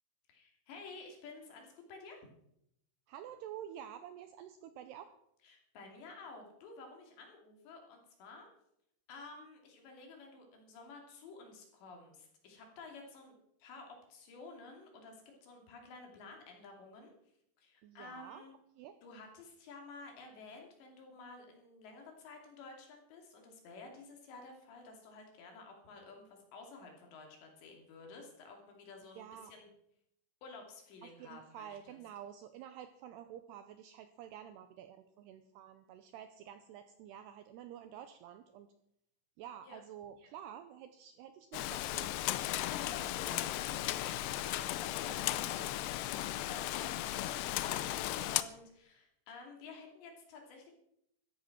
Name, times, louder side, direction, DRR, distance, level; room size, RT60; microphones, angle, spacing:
voice 1, 0.3-2.2 5.4-8.5 9.1-13.3 13.6-17.1 17.6-18.5 19.0-29.7 30.4-32.0 39.6-39.8 42.7-50.7, left 3 dB, 65° left, 2 dB, 4.9 m, -52 dB
voice 2, 3.1-5.1 17.8-18.4 18.8-19.0 29.2-29.5 31.0-38.7 39.4-42.2, right 10 dB, 85° right, 9 dB, 2.4 m, -49 dB
Rain, 41.5-48.4, left 14 dB, 85° left, 2.4 m, -36 dB
14.0 x 12.5 x 6.0 m, 0.76 s
omnidirectional pair, 5.6 m